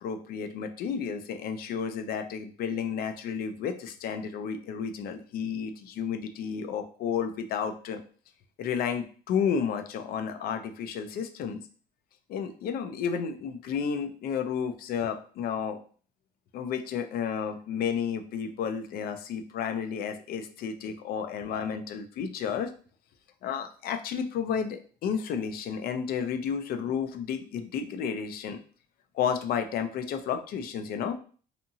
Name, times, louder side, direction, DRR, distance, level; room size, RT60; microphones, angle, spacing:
voice 1, 0.0-8.0 8.6-11.6 12.3-15.8 16.5-22.7 23.4-28.6 29.1-31.2, left 7 dB, 65° left, 7 dB, 0.4 m, -32 dB
2.7 x 2.5 x 2.6 m, 0.42 s
cardioid pair, 110°, 17 cm